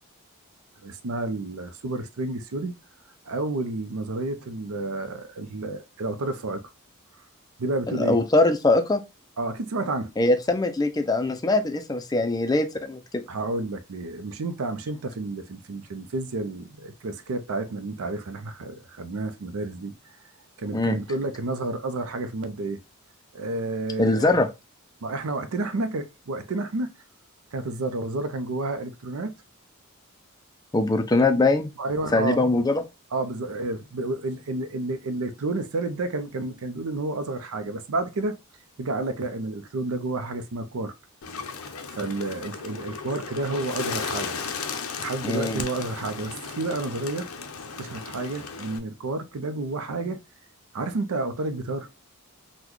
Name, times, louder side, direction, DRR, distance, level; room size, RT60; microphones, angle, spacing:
voice 1, 0.8-2.8 3.3-6.6 7.6-8.2 9.4-10.1 13.3-19.9 20.6-22.8 23.3-24.3 25.0-26.9 27.5-29.3 31.8-32.4 33.1-38.4 38.8-40.9 41.9-44.4 45.0-47.3 47.8-50.2 50.7-51.9, right 2 dB, 85° right, 0.5 m, -30 dB
voice 2, 7.9-9.0 10.2-13.2 20.7-21.0 24.0-24.5 30.7-31.7 32.1-32.8 45.2-45.6, left 2 dB, 20° left, 0.4 m, -22 dB
Bird, 41.2-48.8, left 5 dB, 90° left, 0.5 m, -35 dB
3.9 x 2.2 x 3.0 m
head